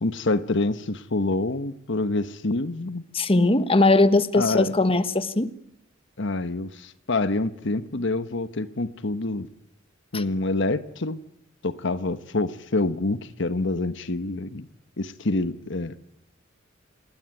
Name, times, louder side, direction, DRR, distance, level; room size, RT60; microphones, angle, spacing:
voice 1, 0.0-3.0 4.3-4.7 6.2-9.5 10.1-11.2 11.6-14.7 15.0-15.9, left 2 dB, 65° left, 1.2 m, -26 dB
voice 2, 3.1-5.5 10.1-10.2, left 2 dB, 30° left, 1.3 m, -20 dB
27.5 x 20.5 x 9.2 m
head